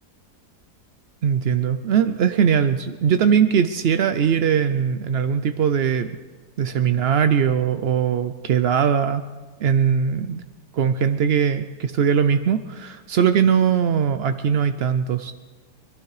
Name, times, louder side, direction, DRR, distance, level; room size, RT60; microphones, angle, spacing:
voice 1, 1.2-6.2 6.6-9.2 9.6-10.4 10.7-15.3, right 7 dB, 70° right, 10 dB, 0.6 m, -20 dB
24.5 x 12.0 x 4.9 m, 1.4 s
omnidirectional pair, 1.7 m